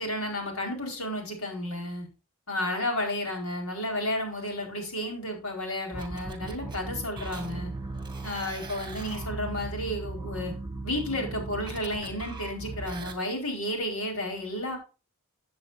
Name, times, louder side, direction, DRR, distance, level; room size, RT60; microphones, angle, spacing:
voice 1, 0.0-2.1 2.5-7.7 8.2-10.5 10.8-14.8, left 1 dB, 75° left, 2 dB, 4.6 m, -32 dB
sound 1, 5.9-13.1, right 3 dB, 20° right, 2.0 m, -37 dB
14.5 x 8.7 x 2.6 m, 0.32 s
head